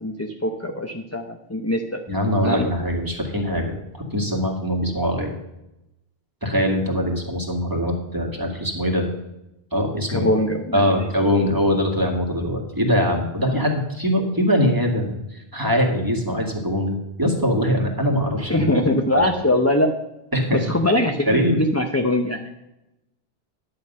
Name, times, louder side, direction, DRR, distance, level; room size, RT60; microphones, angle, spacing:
voice 1, 0.0-2.0 2.4-2.7 10.1-10.9 18.5-19.9 20.5-22.5, left 1 dB, 15° left, 4 dB, 0.7 m, -22 dB
voice 2, 2.1-5.4 6.4-9.0 9.7-10.3 10.7-18.7 19.2-19.3 20.3-20.6 21.3-21.6, equal, 20° right, 1 dB, 2.0 m, -22 dB
11.0 x 7.8 x 5.5 m, 0.90 s
omnidirectional pair, 1.0 m